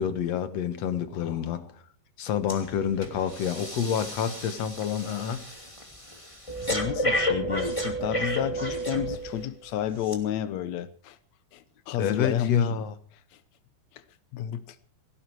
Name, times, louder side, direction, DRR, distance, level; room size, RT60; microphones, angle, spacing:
voice 1, 0.0-1.6 2.2-5.5 12.0-12.9, left 8 dB, 55° left, 2.0 m, -28 dB
voice 2, 1.1-1.5 6.7-11.2 11.5-12.8 14.3-14.8, left 10 dB, 90° left, 1.5 m, -31 dB
Breathing, 2.5-2.7 3.0-9.5 10.0-10.1, equal, 10° left, 1.8 m, -31 dB
17.5 x 17.0 x 4.7 m
omnidirectional pair, 4.5 m